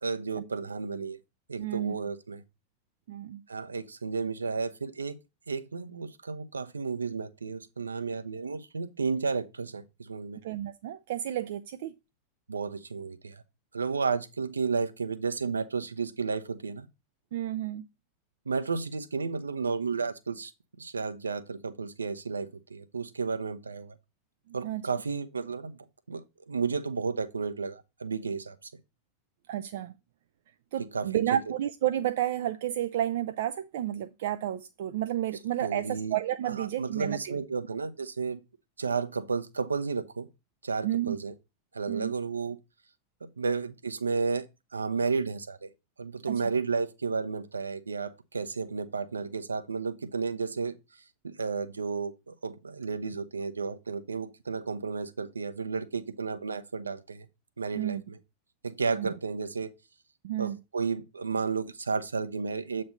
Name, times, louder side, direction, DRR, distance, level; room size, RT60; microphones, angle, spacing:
voice 1, 0.0-1.2 1.5-2.4 3.5-5.1 5.5-10.4 12.5-13.4 13.7-16.9 18.5-20.5 20.8-23.9 24.5-25.8 26.1-28.7 30.8-31.4 35.6-36.2 36.5-38.4 38.8-40.3 40.6-41.3 41.7-42.6 43.2-44.4 44.7-45.7 46.0-50.7 51.2-57.3 57.6-58.2 58.6-59.7 60.4-62.8, right 4 dB, 75° right, 0.7 m, -32 dB
voice 2, 1.6-1.9 3.1-3.4 10.4-11.9 17.3-17.8 24.5-24.8 29.5-29.9 30.7-37.3 40.8-41.2 41.9-42.1 46.3-46.4 57.8-58.0 59.0-59.1 60.2-60.6, right 12 dB, 55° right, 0.4 m, -31 dB
7.9 x 3.2 x 5.1 m
figure-of-eight pair, 90°, 0 cm